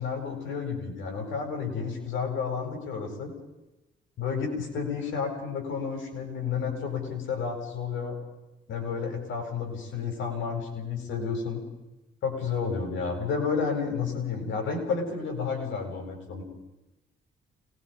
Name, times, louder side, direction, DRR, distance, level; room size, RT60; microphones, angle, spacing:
voice 1, 0.0-3.3 4.2-8.2 8.7-11.6 12.2-16.4, left 5 dB, 75° left, 2 dB, 8.0 m, -31 dB
29.5 x 21.0 x 5.4 m, 1.0 s
cardioid pair, 90°, 20 cm